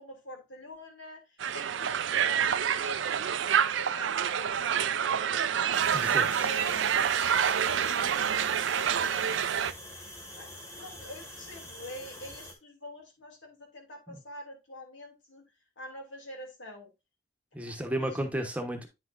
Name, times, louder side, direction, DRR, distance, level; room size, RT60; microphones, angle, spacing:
voice 1, 0.0-5.9 6.4-6.8 7.2-9.1 10.4-10.5 10.8-15.4 15.8-16.9 17.7-18.5, equal, 85° left, 2.8 m, -46 dB
Crowd, 1.4-9.7, right 8 dB, 80° right, 0.5 m, -27 dB
sound 1, 5.7-12.5, left 1 dB, 15° left, 1.7 m, -45 dB
voice 2, 5.9-6.5 14.1-14.2 17.5-18.9, right 1 dB, 5° right, 1.0 m, -33 dB
9.2 x 6.0 x 2.5 m
head